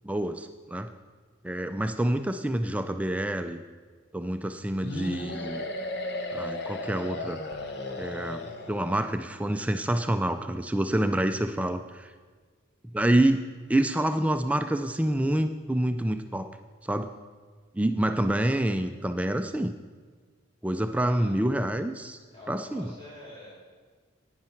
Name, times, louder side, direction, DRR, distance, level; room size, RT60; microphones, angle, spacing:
voice 1, 0.0-0.9 1.4-3.6 4.1-5.6 6.3-7.4 8.0-12.1 12.9-13.4 13.7-16.5 16.8-17.1 17.7-19.7 20.6-22.2 22.5-22.9, right 1 dB, 5° right, 8 dB, 0.3 m, -27 dB
sound 1, 4.8-9.0, left 2 dB, 55° left, 1.0 m, -35 dB
voice 2, 21.0-21.3 22.3-23.6, left 1 dB, 25° left, -6 dB, 3.7 m, -46 dB
11.5 x 9.6 x 4.5 m, 1.5 s
head